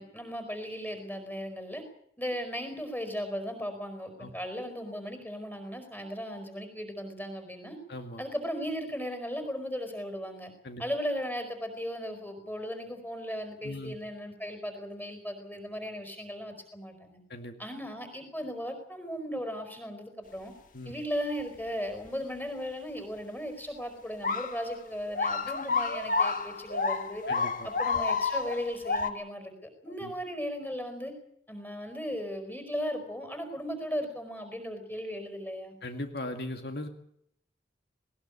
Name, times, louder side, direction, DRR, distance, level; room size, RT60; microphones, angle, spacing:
voice 1, 0.0-1.8 2.2-7.8 8.2-10.5 10.8-17.2 17.6-20.5 20.8-27.2 27.6-31.1 31.5-35.7, equal, 10° left, 7 dB, 4.9 m, -36 dB
voice 2, 7.9-8.2 10.6-10.8 13.6-13.9 17.3-17.6 20.7-20.9 27.3-27.7 29.9-30.1 35.8-36.9, left 1 dB, 60° left, 5 dB, 2.1 m, -38 dB
sound 1, 24.2-24.6 25.1-29.1, left 4 dB, 45° left, 1.8 m, -29 dB
20.0 x 19.5 x 8.4 m, 0.69 s
head